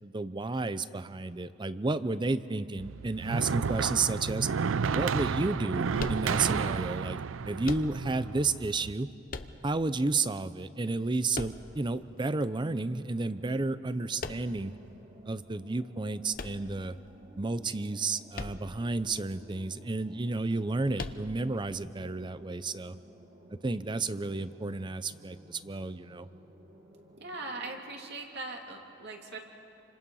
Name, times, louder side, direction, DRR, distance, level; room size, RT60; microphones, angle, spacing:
voice 1, 0.0-4.5 4.9-7.2 7.5-9.1 9.6-14.7 15.3-17.0 17.4-23.0 23.6-26.3, right 3 dB, 25° right, 14 dB, 0.6 m, -31 dB
sound 1, 2.8-8.9, right 5 dB, 80° right, 0.5 m, -32 dB
sound 2, 6.0-6.7 7.6-8.3 9.3-10.0 11.3-12.1 14.2-14.8 16.3-17.2 18.3-18.9 19.2-19.3 20.9-21.6, left 3 dB, 45° left, 0.8 m, -40 dB
sound 3, 13.0-27.8, right 1 dB, 40° right, 2.5 m, -55 dB
voice 2, 27.2-29.4, right 2 dB, 55° right, 1 dB, 2.7 m, -40 dB
28.0 x 26.0 x 5.5 m, 2.8 s
head